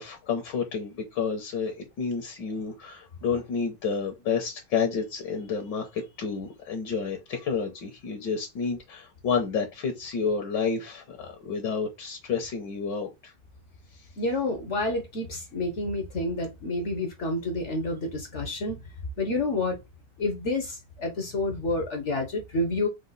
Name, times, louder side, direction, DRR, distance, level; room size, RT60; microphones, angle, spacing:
voice 1, 0.0-13.3, left 5 dB, 70° left, 1.5 m, -30 dB
voice 2, 14.2-18.9 19.2-19.8 20.2-22.9, left 2 dB, 50° left, 0.9 m, -29 dB
5.0 x 2.4 x 3.9 m
omnidirectional pair, 2.1 m